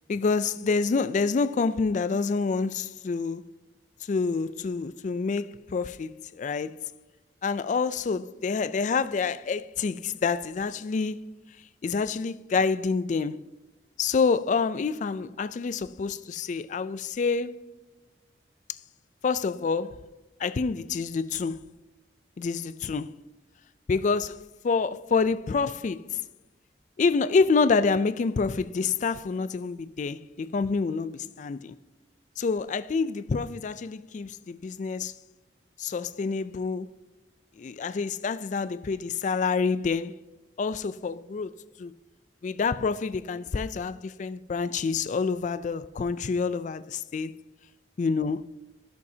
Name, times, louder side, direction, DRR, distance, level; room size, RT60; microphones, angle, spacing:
voice 1, 0.1-3.6 4.0-6.9 7.4-11.2 11.8-13.5 14.0-17.7 19.2-20.0 20.4-21.7 22.4-23.2 23.9-26.2 27.0-31.8 32.4-35.1 35.8-36.9 37.6-40.1 40.6-41.5 41.8-41.9 42.4-47.4 48.0-48.5, left 4 dB, 45° left, 0.3 m, -27 dB
13.0 x 6.9 x 2.8 m
head